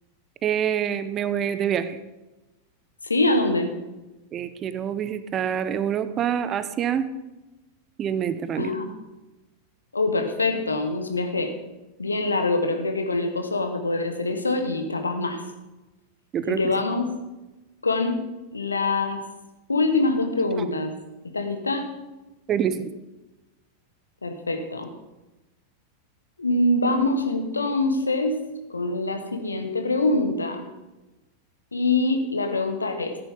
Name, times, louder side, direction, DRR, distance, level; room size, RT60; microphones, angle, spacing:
voice 1, 0.4-2.0 4.3-7.1 8.0-8.7 16.3-16.6 22.5-22.9, right 9 dB, 30° right, 13 dB, 0.7 m, -26 dB
voice 2, 3.0-3.7 8.6-8.9 9.9-11.5 12.0-15.4 16.5-17.1 17.8-18.2 18.5-19.2 19.7-20.9 21.3-21.9 24.2-24.9 26.4-28.4 28.7-30.7 31.7-33.2, left 2 dB, 80° left, 6 dB, 1.4 m, -24 dB
14.5 x 9.7 x 3.8 m, 1.1 s
figure-of-eight pair, 90°, 0 cm